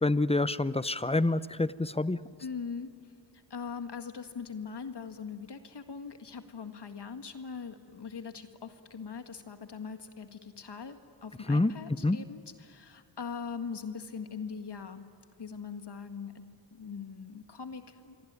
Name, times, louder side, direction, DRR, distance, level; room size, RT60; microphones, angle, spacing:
voice 1, 0.0-2.2 11.5-11.7 12.0-12.2, left 2 dB, 15° left, 16 dB, 0.8 m, -27 dB
voice 2, 2.4-2.9 3.5-15.1 15.4-18.2, left 6 dB, 60° left, 7 dB, 1.9 m, -41 dB
26.5 x 23.0 x 9.6 m, 2.4 s
cardioid pair, 50°, 46 cm